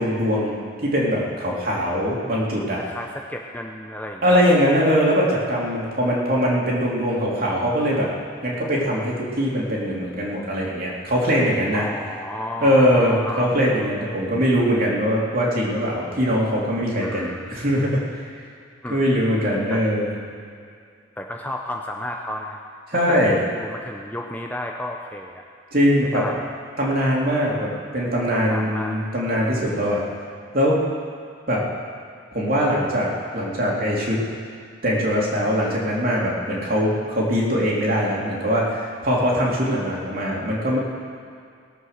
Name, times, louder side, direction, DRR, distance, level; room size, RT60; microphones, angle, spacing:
voice 1, 0.0-2.8 4.2-8.1 8.4-11.9 12.6-18.2 18.9-20.1 22.9-23.4 25.7-26.2 26.8-30.0 30.5-30.8 31.5-31.6 32.3-34.2 34.8-40.8, equal, 45° right, -4 dB, 2.9 m, -21 dB
voice 2, 2.7-4.6 11.7-13.6 17.0-17.6 18.8-19.2 19.4-19.9 21.2-22.6 22.9-23.2 23.5-25.4 26.1-26.5 27.5-27.7 28.3-29.0, left 1 dB, 10° left, 1 dB, 0.6 m, -33 dB
19.0 x 8.0 x 6.5 m, 2.3 s
head